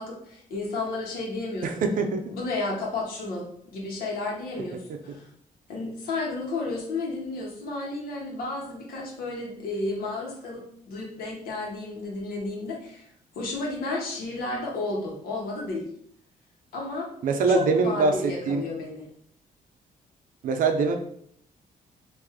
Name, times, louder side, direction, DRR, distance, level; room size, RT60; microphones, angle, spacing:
voice 1, 0.0-1.7 2.3-5.3 5.7-13.1 13.3-15.9 16.7-17.1 17.5-19.1, left 2 dB, 85° left, -2 dB, 1.1 m, -32 dB
voice 2, 1.6-2.2 4.6-4.7 17.2-18.6 20.4-21.0, right 4 dB, 65° right, 5 dB, 0.5 m, -23 dB
3.3 x 2.6 x 3.6 m, 0.66 s
cardioid pair, 175°, 15 cm